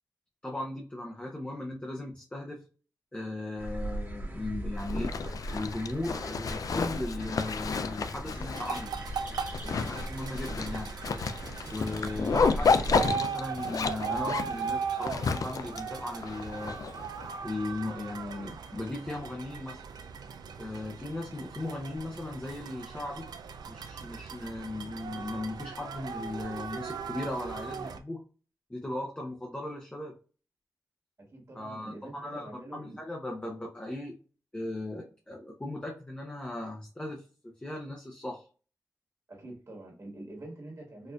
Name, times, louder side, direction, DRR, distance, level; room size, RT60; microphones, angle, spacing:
voice 1, 0.4-2.6 3.1-5.1 5.5-8.9 9.6-10.9 11.7-16.8 17.4-19.8 20.6-23.3 23.7-28.2 28.7-30.2 31.5-34.2 34.5-38.5, left 2 dB, 15° left, 0.6 m, -37 dB
sound 1, 3.6-13.1, right 1 dB, 30° right, 1.1 m, -39 dB
Zipper (clothing), 4.8-17.3, left 5 dB, 60° left, 0.3 m, -31 dB
sound 2, 8.5-28.0, right 6 dB, 85° right, 0.3 m, -39 dB
voice 2, 31.3-33.0 39.3-41.1, right 1 dB, 50° right, 1.6 m, -45 dB
4.3 x 2.4 x 2.3 m
cardioid pair, 65°, 7 cm